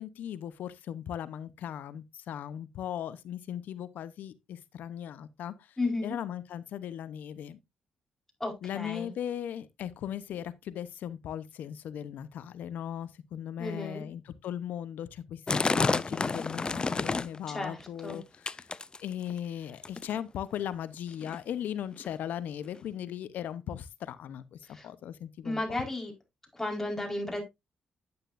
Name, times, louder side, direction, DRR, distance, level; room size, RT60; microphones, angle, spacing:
voice 1, 0.0-5.8 6.0-7.6 8.6-18.7 19.0-25.8, left 10 dB, 75° left, 0.8 m, -38 dB
voice 2, 5.8-6.2 8.4-9.1 13.6-14.1 17.5-18.2 24.7-24.9 25.4-26.1 26.5-27.4, left 2 dB, 10° left, 4.5 m, -34 dB
sound 1, 15.5-17.4 17.8-18.2 18.5-19.3 19.8-20.2 20.9-21.0 21.2-21.4 22.0-22.1 22.8-22.9, left 4 dB, 30° left, 0.5 m, -29 dB
9.7 x 8.9 x 2.6 m
supercardioid pair, 60°, 3 cm